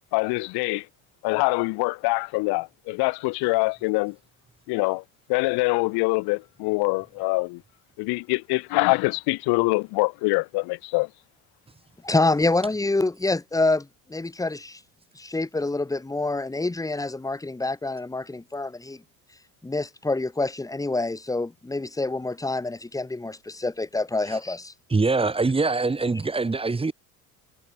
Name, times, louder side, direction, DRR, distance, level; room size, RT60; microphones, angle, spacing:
voice 1, 0.1-0.9 1.2-4.2 4.7-5.0 5.3-7.6 8.0-11.1, left 26 dB, 75° left, 3.3 m, -24 dB
voice 2, 12.0-14.8 15.1-19.0 19.6-24.7, left 2 dB, 10° left, 3.0 m, -27 dB
voice 3, 24.9-26.9, right 3 dB, 15° right, 3.3 m, -23 dB
cardioid pair, 130°, 39 cm